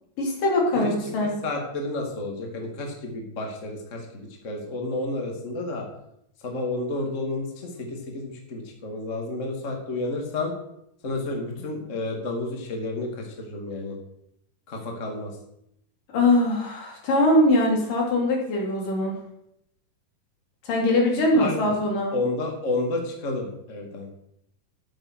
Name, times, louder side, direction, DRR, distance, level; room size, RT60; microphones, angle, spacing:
voice 1, 0.2-1.4 16.1-19.2 20.6-22.2, left 1 dB, 75° left, -1 dB, 5.0 m, -22 dB
voice 2, 1.2-5.9 6.4-10.5 11.0-14.0 14.7-15.3 21.4-21.5 22.1-24.1, left 2 dB, 25° left, 2 dB, 2.4 m, -31 dB
13.5 x 8.9 x 6.4 m, 0.77 s
omnidirectional pair, 3.9 m